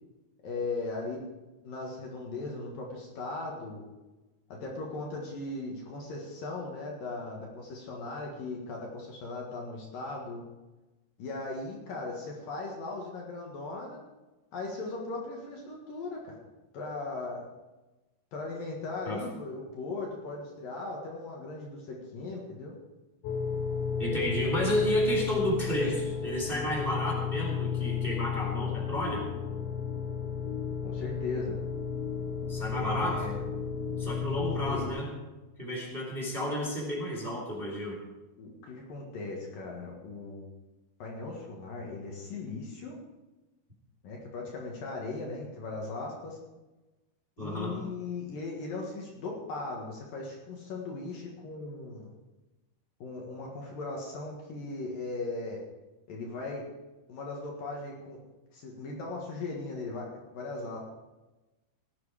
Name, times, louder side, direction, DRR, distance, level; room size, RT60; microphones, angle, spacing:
voice 1, 0.4-1.2 1.6-3.8 4.5-10.4 11.2-14.0 14.5-16.4 16.7-17.5 18.3-22.7 30.8-31.6 32.7-33.4 34.5-35.0 38.4-40.4 41.0-42.9 44.0-46.4 47.4-52.1 53.0-55.6 56.1-56.7 57.1-58.2 58.5-60.8, left 3 dB, 60° left, -1 dB, 3.1 m, -38 dB
sound 1, 23.2-34.9, left 7 dB, 85° left, 3.6 m, -33 dB
voice 2, 24.0-29.2 32.5-33.2 34.0-35.1 35.6-38.0 47.4-47.8, equal, 15° right, -2 dB, 2.6 m, -31 dB
18.0 x 9.7 x 5.0 m, 1.1 s
omnidirectional pair, 5.1 m